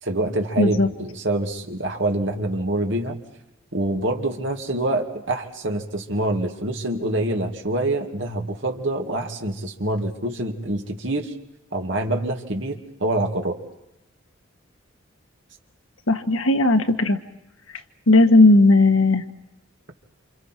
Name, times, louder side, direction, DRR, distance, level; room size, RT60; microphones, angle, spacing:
voice 1, 0.0-3.2 3.7-11.3 11.7-13.6, right 1 dB, 60° right, 2 dB, 2.5 m, -26 dB
voice 2, 0.6-0.9 16.1-17.2 18.1-19.2, left 2 dB, 85° left, 7 dB, 1.6 m, -16 dB
29.0 x 27.5 x 4.6 m, 0.88 s
head